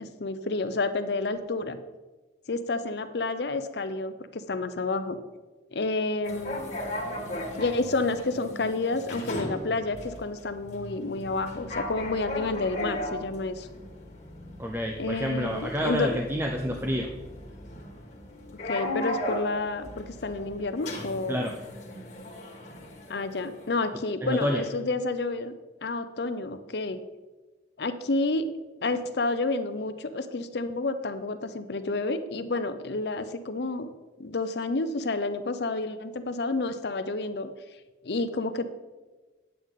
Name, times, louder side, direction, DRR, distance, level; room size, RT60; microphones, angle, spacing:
voice 1, 0.0-1.8 2.5-5.2 5.7-6.7 7.6-13.7 15.0-16.2 18.6-21.5 23.1-25.5 25.8-27.0 27.8-28.5 28.8-33.9 34.2-37.5 38.0-38.8, left 3 dB, 70° left, 10 dB, 0.6 m, -30 dB
sound 1, 6.2-23.8, left 1 dB, 40° left, 1.7 m, -37 dB
voice 2, 14.6-17.1 21.3-21.5 23.9-24.6, equal, 15° right, 1 dB, 0.5 m, -29 dB
9.3 x 7.9 x 3.7 m, 1.2 s
head